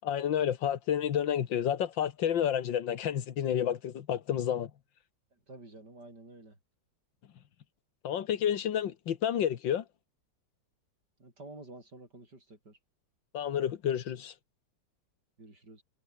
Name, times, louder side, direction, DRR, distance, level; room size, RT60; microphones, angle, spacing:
voice 1, 0.0-4.7 8.0-9.8 13.3-14.3, left 9 dB, 85° left, 2.0 m, -30 dB
voice 2, 5.3-6.6 11.2-12.8 15.4-15.8, right 2 dB, 65° right, 7.9 m, -50 dB
omnidirectional pair, 2.0 m